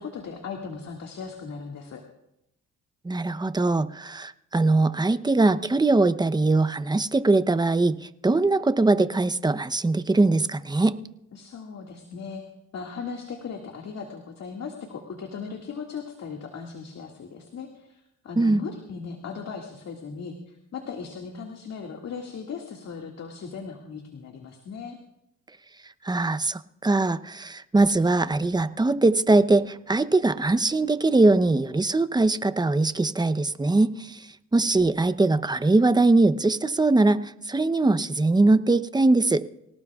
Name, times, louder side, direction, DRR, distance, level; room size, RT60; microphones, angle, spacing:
voice 1, 0.0-2.0 11.3-12.4 12.7-25.0, left 5 dB, 60° left, 1 dB, 2.2 m, -38 dB
voice 2, 3.0-11.0 18.4-18.6 26.0-39.4, right 2 dB, 15° right, 12 dB, 0.8 m, -21 dB
25.5 x 17.5 x 2.4 m, 0.82 s
cardioid pair, 90°, 30 cm